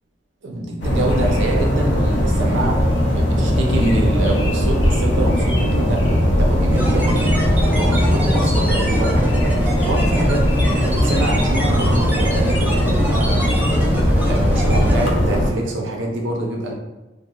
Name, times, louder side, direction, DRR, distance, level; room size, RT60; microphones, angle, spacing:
voice 1, 0.4-7.3 7.6-10.5 10.8-13.5 14.3-16.7, right 2 dB, 85° right, 0 dB, 0.5 m, -25 dB
sound 1, 0.8-15.5, equal, 70° left, 0.5 m, -18 dB
sound 2, 6.7-15.1, equal, 10° right, 0.4 m, -25 dB
2.9 x 2.1 x 2.3 m, 1.0 s
head